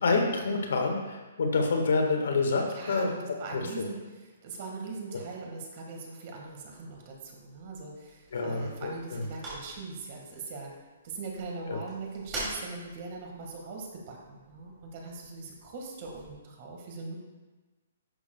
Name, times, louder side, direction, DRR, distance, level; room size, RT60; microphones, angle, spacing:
voice 1, 0.0-3.1 3.5-3.6 8.3-9.2 11.7-11.8, left 3 dB, 75° left, 3 dB, 1.4 m, -27 dB
voice 2, 2.7-10.7 11.0-17.2, right 3 dB, 35° right, 0 dB, 1.6 m, -41 dB
sound 1, 6.9-16.3, right 2 dB, 15° right, 2.7 m, -46 dB
11.0 x 6.9 x 2.2 m, 1.2 s
hypercardioid pair, 170°, 0 cm